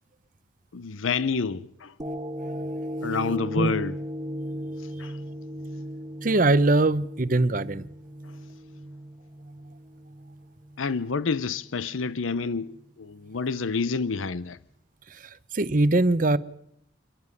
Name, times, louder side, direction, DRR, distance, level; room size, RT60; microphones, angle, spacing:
voice 1, 0.7-1.9 3.0-4.0 5.0-5.2 10.8-14.6, left 4 dB, 90° left, 0.7 m, -28 dB
sound 1, 2.0-10.4 10.9-11.0, equal, 20° right, 1.3 m, -36 dB
voice 2, 6.2-7.8 15.5-16.4, right 2 dB, 40° right, 0.8 m, -21 dB
28.0 x 11.5 x 9.7 m
head